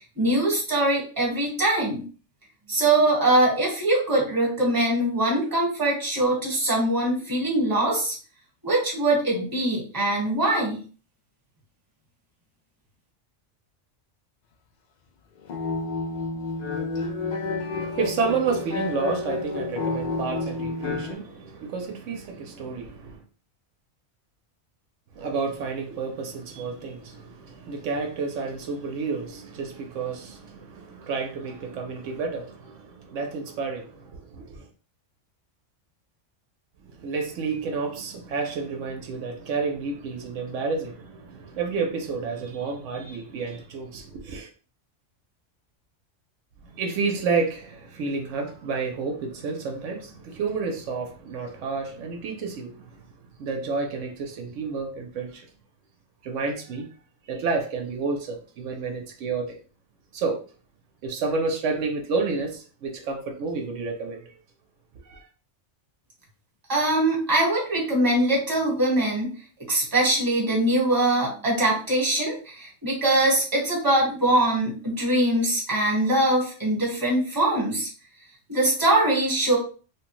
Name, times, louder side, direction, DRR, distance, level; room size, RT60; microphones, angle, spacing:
voice 1, 0.2-2.0 2.7-8.1 8.6-10.8 66.7-69.3 69.7-77.9 78.5-79.6, right 1 dB, 20° right, 1.1 m, -22 dB
sound 1, 15.4-21.2, left 3 dB, 65° left, 0.4 m, -30 dB
voice 2, 17.7-23.2 25.1-34.7 36.8-44.5 46.6-55.5 56.2-56.9 57.3-59.6 60.1-60.4 61.0-64.3 65.0-65.3, right 4 dB, 85° right, 1.0 m, -30 dB
3.1 x 2.2 x 3.0 m
omnidirectional pair, 1.3 m